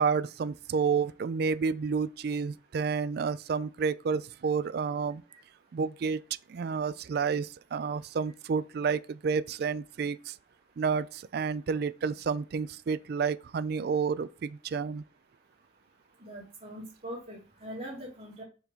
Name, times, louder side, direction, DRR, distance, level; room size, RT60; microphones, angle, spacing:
voice 1, 0.0-5.2 5.7-6.2 6.5-10.4 10.8-15.0, right 5 dB, 55° right, 0.3 m, -30 dB
voice 2, 16.2-18.4, equal, 30° right, 2.4 m, -42 dB
4.8 x 3.7 x 5.2 m
head